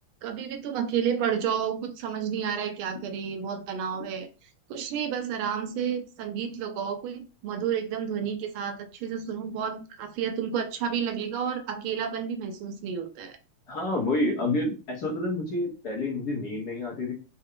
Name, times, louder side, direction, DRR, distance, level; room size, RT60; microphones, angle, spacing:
voice 1, 0.2-4.3 4.7-13.4, right 8 dB, 75° right, 7 dB, 1.4 m, -31 dB
voice 2, 13.7-17.1, left 2 dB, 55° left, -1 dB, 1.3 m, -28 dB
4.4 x 2.2 x 3.6 m, 0.34 s
omnidirectional pair, 2.4 m